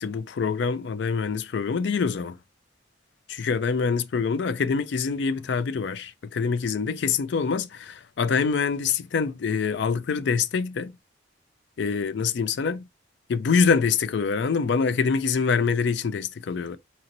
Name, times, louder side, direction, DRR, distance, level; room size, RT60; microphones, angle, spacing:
voice 1, 0.0-2.4 3.3-11.0 11.8-12.9 13.3-16.8, left 5 dB, 65° left, 0.4 m, -25 dB
4.2 x 2.6 x 2.8 m
head